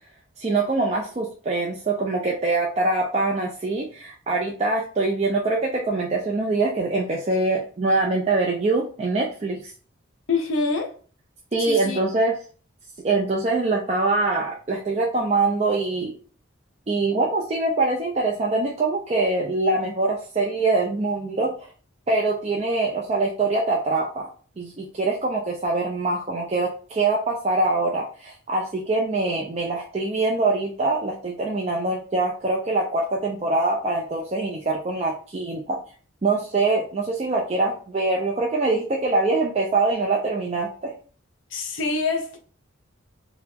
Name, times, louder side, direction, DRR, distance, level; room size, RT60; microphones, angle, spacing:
voice 1, 0.4-9.6 11.5-12.4 13.0-16.1 16.9-21.5 22.1-24.3 24.6-35.8 36.2-40.9, right 3 dB, 30° right, 0.4 m, -24 dB
voice 2, 10.3-10.9 11.6-12.0 41.5-42.4, left 4 dB, 65° left, 0.6 m, -25 dB
2.9 x 2.3 x 3.4 m
head